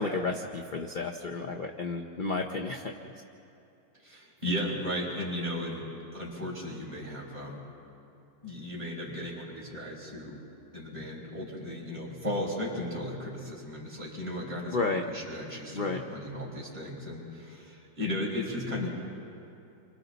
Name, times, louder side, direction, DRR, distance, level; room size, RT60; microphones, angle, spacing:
voice 1, 0.0-3.1 14.7-15.0 15.7-16.0, left 3 dB, 45° left, 3 dB, 0.7 m, -32 dB
voice 2, 4.0-5.8 6.1-7.7 8.4-10.4 10.7-18.9, left 1 dB, 20° right, -5 dB, 5.2 m, -35 dB
28.5 x 25.0 x 4.1 m, 2.7 s
omnidirectional pair, 1.9 m